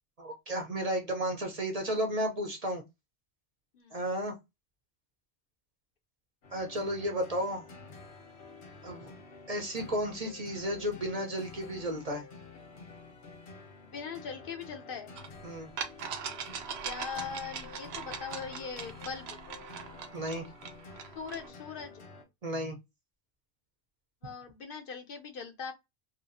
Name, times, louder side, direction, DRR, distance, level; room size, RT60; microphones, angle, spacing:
voice 1, 0.2-2.8 3.9-4.4 6.5-7.7 8.8-9.1 9.5-12.2 15.4-15.7 20.1-20.5 22.4-22.8, equal, 40° right, 0.8 m, -33 dB
sound 1, 6.4-22.2, left 4 dB, 85° left, 1.3 m, -50 dB
voice 2, 13.9-15.1 16.8-19.4 21.1-22.0 24.2-25.7, left 6 dB, 65° left, 0.7 m, -41 dB
sound 2, 15.2-15.3 15.8-21.5, right 7 dB, 80° right, 0.8 m, -41 dB
2.8 x 2.7 x 2.6 m
omnidirectional pair, 1.1 m